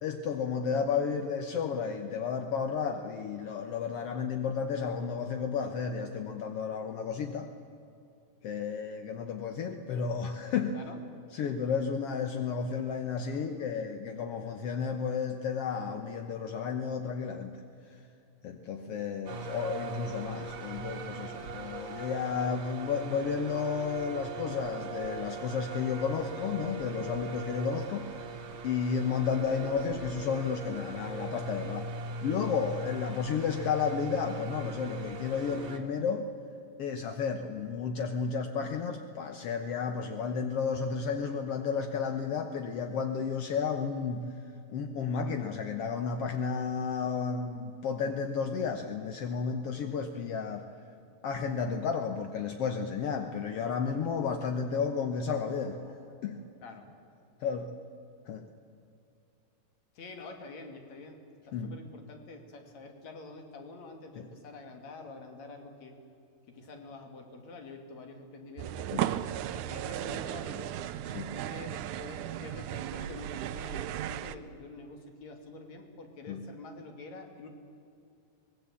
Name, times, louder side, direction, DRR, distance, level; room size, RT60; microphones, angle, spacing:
voice 1, 0.0-7.5 8.4-10.8 11.3-17.6 18.4-28.2 28.6-31.9 32.2-36.3 36.8-44.2 44.7-50.7 51.2-55.8 56.2-56.4 57.4-57.7 58.3-58.4 61.5-61.7 64.2-64.3 68.9-69.1 71.1-71.3 76.3-76.5, left 6 dB, 70° left, 6 dB, 1.4 m, -32 dB
sound 1, 19.3-35.8, right 3 dB, 40° right, 2.0 m, -40 dB
voice 2, 55.5-56.1 56.6-56.9 60.0-61.2 61.5-66.0 66.5-68.9 69.4-70.8 71.3-77.5, left 3 dB, 50° left, 4 dB, 3.7 m, -47 dB
sound 2, 68.6-74.4, right 12 dB, 75° right, 1.9 m, -35 dB
24.0 x 20.0 x 8.4 m, 2.6 s
omnidirectional pair, 4.2 m